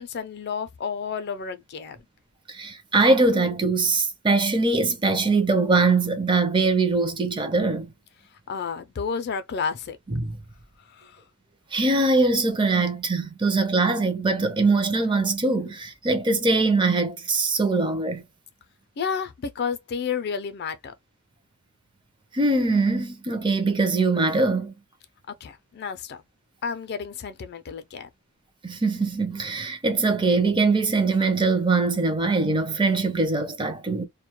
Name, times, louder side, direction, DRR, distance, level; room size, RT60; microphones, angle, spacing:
voice 1, 0.0-2.0 8.5-10.0 10.9-11.2 19.0-20.9 25.4-26.2 26.6-28.1, left 6 dB, 45° left, 0.4 m, -31 dB
voice 2, 2.5-7.9 10.1-10.4 11.7-18.2 22.3-24.7 28.6-34.1, right 3 dB, 20° right, 0.5 m, -22 dB
2.2 x 2.1 x 2.8 m
head